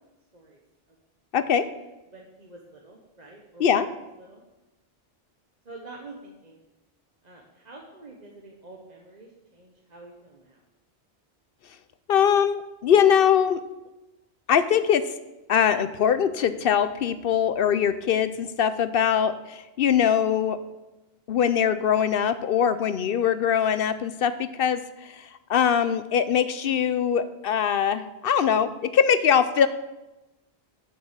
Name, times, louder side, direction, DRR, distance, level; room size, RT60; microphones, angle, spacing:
voice 1, 1.3-1.6 3.6-3.9 12.1-13.6 14.5-15.0 15.5-20.6 21.3-29.7, left 8 dB, 65° left, 12 dB, 0.7 m, -22 dB
voice 2, 2.1-3.8 4.2-4.4 5.6-6.6 7.2-10.6, right 2 dB, 40° right, -1 dB, 1.2 m, -47 dB
8.5 x 6.4 x 7.4 m, 1.0 s
omnidirectional pair, 1.1 m